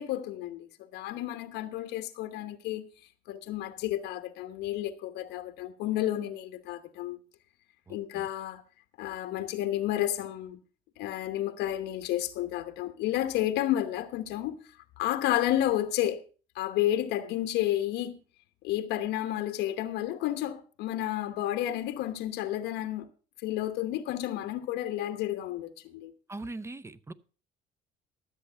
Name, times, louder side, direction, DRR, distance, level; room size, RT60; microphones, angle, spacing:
voice 1, 0.0-2.9 3.3-7.2 7.9-8.6 9.0-10.6 11.0-14.6 15.0-16.2 16.5-18.2 18.6-23.1 23.4-26.1, left 13 dB, 90° left, 1.0 m, -31 dB
voice 2, 7.9-8.3 26.3-27.1, right 2 dB, 15° right, 0.7 m, -41 dB
13.0 x 7.9 x 5.5 m
cardioid pair, 110°, 17 cm